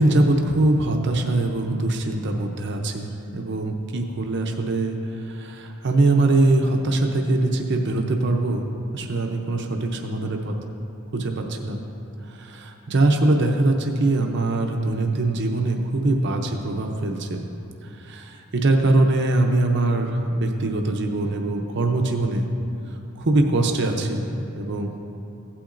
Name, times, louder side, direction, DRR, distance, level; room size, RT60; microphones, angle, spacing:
voice 1, 0.0-8.6 8.9-10.5 11.1-11.8 12.3-17.4 17.8-22.5 23.2-24.3 24.5-24.9, right 2 dB, 55° right, 3 dB, 0.7 m, -22 dB
15.5 x 8.6 x 2.6 m, 2.7 s
head